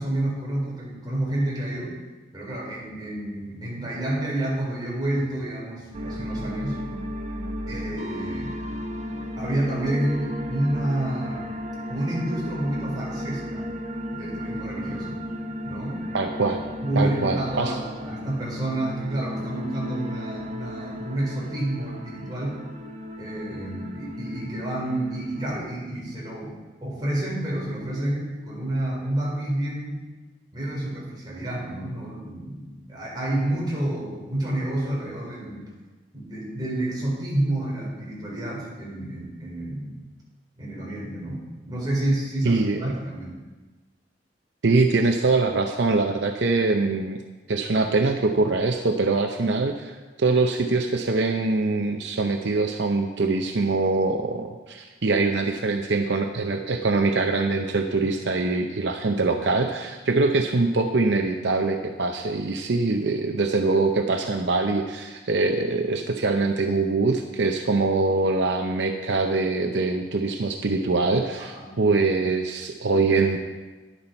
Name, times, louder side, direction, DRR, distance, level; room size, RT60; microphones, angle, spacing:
voice 1, 0.0-1.9 2.3-6.8 7.7-8.6 9.4-11.5 11.9-13.7 14.1-15.2 15.6-16.0 16.8-22.6 23.2-30.0 30.5-35.6 36.1-40.1 40.6-43.4 71.4-71.7, right 1 dB, 25° right, -5 dB, 4.0 m, -29 dB
sound 1, 5.9-25.6, left 1 dB, 40° right, 0.9 m, -34 dB
voice 2, 16.1-16.6 17.0-17.8 42.4-43.0 44.6-47.2 47.5-73.4, right 3 dB, 65° right, 5 dB, 0.7 m, -23 dB
11.0 x 10.5 x 4.4 m, 1.2 s
head